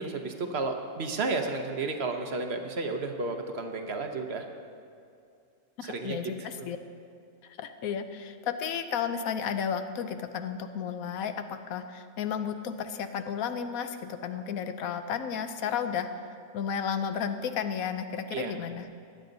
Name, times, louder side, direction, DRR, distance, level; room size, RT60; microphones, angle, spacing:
voice 1, 0.0-4.4 5.8-6.7 18.3-18.6, right 3 dB, 55° right, 4 dB, 1.1 m, -32 dB
voice 2, 5.8-6.8 7.6-16.1 16.5-18.8, left 7 dB, 90° left, 9 dB, 1.2 m, -33 dB
16.0 x 10.0 x 4.0 m, 2.5 s
omnidirectional pair, 1.4 m